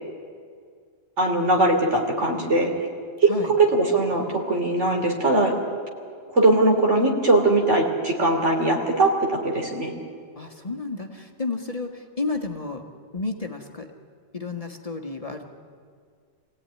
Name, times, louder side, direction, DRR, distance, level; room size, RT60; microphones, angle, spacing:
voice 1, 1.2-2.7 3.2-3.3 3.6-5.5 6.3-9.9, right 2 dB, 80° right, 2 dB, 3.4 m, -20 dB
voice 2, 10.4-12.8 13.1-13.9 14.3-15.5, left 3 dB, 30° left, 3 dB, 1.7 m, -31 dB
24.5 x 16.5 x 9.6 m, 2.1 s
omnidirectional pair, 1.2 m